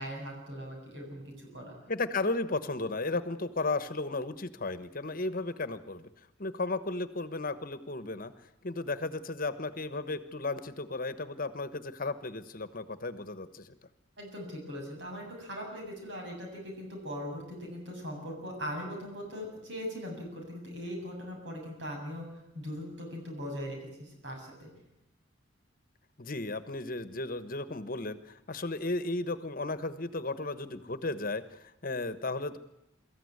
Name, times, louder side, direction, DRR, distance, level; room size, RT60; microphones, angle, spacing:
voice 1, 0.0-1.7 14.2-22.3 22.5-24.7, equal, 70° right, 1 dB, 7.4 m, -40 dB
voice 2, 1.9-6.1 6.4-8.3 8.6-13.8 26.2-32.6, left 2 dB, 50° left, 13 dB, 1.2 m, -34 dB
24.0 x 14.5 x 9.7 m, 0.89 s
head